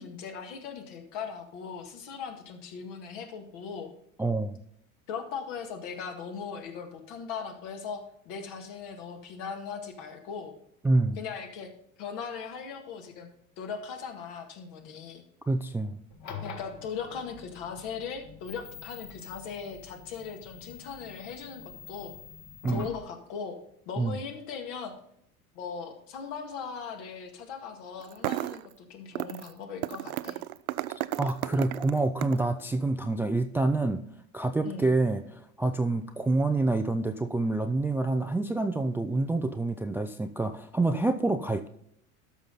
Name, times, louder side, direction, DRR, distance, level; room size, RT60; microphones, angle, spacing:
voice 1, 0.0-3.9 5.1-10.5 11.2-11.7 12.0-13.3 13.6-15.2 16.4-22.1 22.7-23.6 23.9-24.9 25.6-30.4 34.6-34.9, left 6 dB, 60° left, 4 dB, 2.0 m, -39 dB
voice 2, 4.2-4.6 10.8-11.2 15.5-16.0 22.6-22.9 24.0-24.2 31.2-34.0 34.3-41.7, right 2 dB, 5° right, 7 dB, 0.4 m, -27 dB
sound 1, 16.1-23.0, left 6 dB, 45° left, 1.6 m, -45 dB
sound 2, 28.0-28.7 29.1-29.5 29.8-32.5, right 15 dB, 80° right, 0.5 m, -33 dB
13.0 x 5.8 x 3.9 m, 0.72 s
hypercardioid pair, 85°, 42 cm